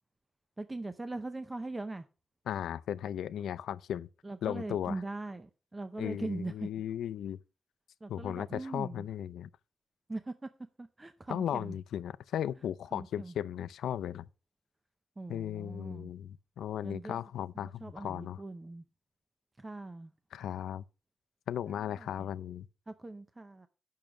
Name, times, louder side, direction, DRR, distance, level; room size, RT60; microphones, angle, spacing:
voice 1, 0.6-2.1 4.2-6.7 8.0-9.1 10.1-10.5 10.8-11.8 12.9-13.3 15.2-16.1 16.8-17.2 17.6-18.8 19.6-20.1 21.7-22.3 22.9-23.7, right 2 dB, 15° right, 0.6 m, -41 dB
voice 2, 2.5-4.1 4.4-5.0 6.0-7.4 8.1-9.5 11.3-14.3 15.3-18.4 20.3-20.8 21.5-22.7, left 10 dB, 85° left, 0.4 m, -36 dB
8.9 x 6.4 x 6.0 m
wide cardioid pair, 135°, 0 cm